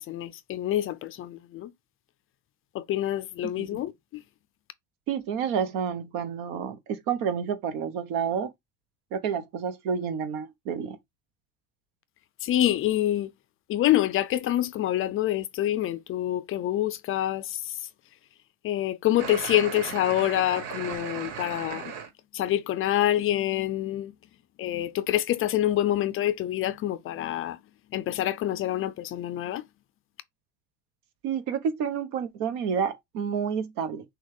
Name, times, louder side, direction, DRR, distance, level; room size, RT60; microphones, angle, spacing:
voice 1, 0.0-1.7 2.7-4.2 12.4-13.3 13.7-17.8 18.6-21.9 22.3-24.1 24.6-27.6 27.9-29.6, left 13 dB, 35° left, 0.4 m, -26 dB
voice 2, 5.1-8.5 9.1-11.0 31.2-34.0, right 7 dB, 65° right, 1.1 m, -29 dB
sound 1, 19.2-22.1, right 7 dB, 85° right, 1.4 m, -36 dB
6.1 x 2.4 x 3.5 m
supercardioid pair, 130°, 37 cm